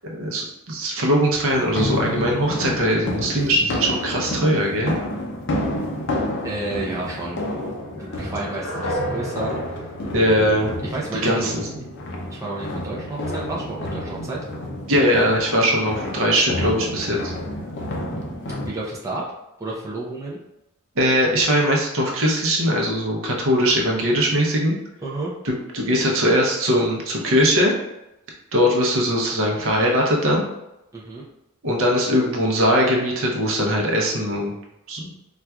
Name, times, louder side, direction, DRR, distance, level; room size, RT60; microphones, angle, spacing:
voice 1, 0.1-5.0 10.1-10.8 11.2-11.9 14.9-17.3 21.0-24.7 25.4-27.7 28.5-30.4 31.6-34.5 34.9-35.1, equal, 60° right, -1 dB, 0.7 m, -20 dB
sound 1, 1.5-18.7, left 1 dB, 50° left, 0.5 m, -30 dB
voice 2, 6.1-7.4 7.9-9.9 10.2-11.6 12.3-14.4 18.7-19.2 19.6-20.4 25.0-25.3 30.9-31.2, right 2 dB, 15° right, -5 dB, 0.5 m, -31 dB
sound 2, 8.0-11.1, right 1 dB, 80° left, 0.9 m, -32 dB
4.2 x 2.4 x 2.3 m, 0.89 s
head